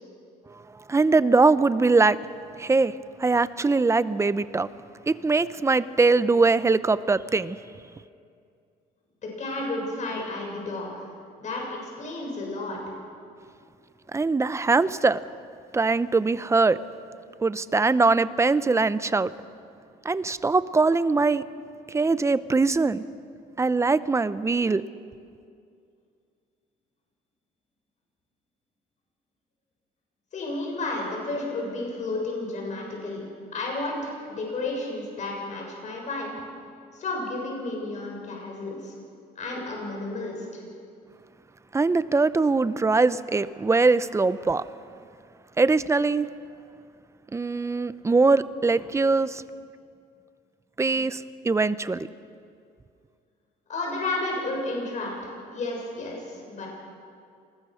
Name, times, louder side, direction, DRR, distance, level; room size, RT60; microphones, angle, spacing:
voice 1, 0.9-2.2 2.6-2.9 3.2-4.7 5.1-7.6 14.1-15.2 15.7-16.8 17.4-19.3 20.0-21.4 21.9-23.0 23.6-24.8 41.7-44.6 45.6-46.3 47.3-49.4 50.8-51.2 51.4-52.1, right 3 dB, 15° right, 15 dB, 0.7 m, -22 dB
voice 2, 9.4-11.0 11.4-12.8 30.3-33.2 33.5-36.4 36.9-38.9 39.4-40.6 53.7-56.7, left 2 dB, 45° left, -1 dB, 7.2 m, -32 dB
27.0 x 21.0 x 6.4 m, 2.4 s
cardioid pair, 110°, 17 cm